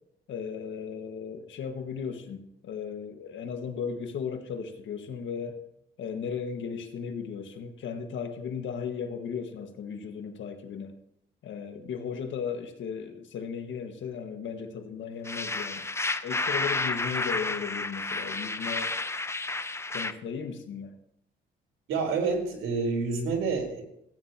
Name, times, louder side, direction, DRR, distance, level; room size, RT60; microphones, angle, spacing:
voice 1, 0.3-5.6 6.0-10.9 11.4-15.9 16.2-18.9 19.9-20.9, left 6 dB, 70° left, 6 dB, 1.6 m, -36 dB
sound 1, 15.2-20.1, left 3 dB, 15° left, 0.6 m, -31 dB
voice 2, 21.9-23.8, right 4 dB, 85° right, 1 dB, 3.7 m, -28 dB
16.5 x 9.3 x 2.9 m, 0.78 s
cardioid pair, 90°, 20 cm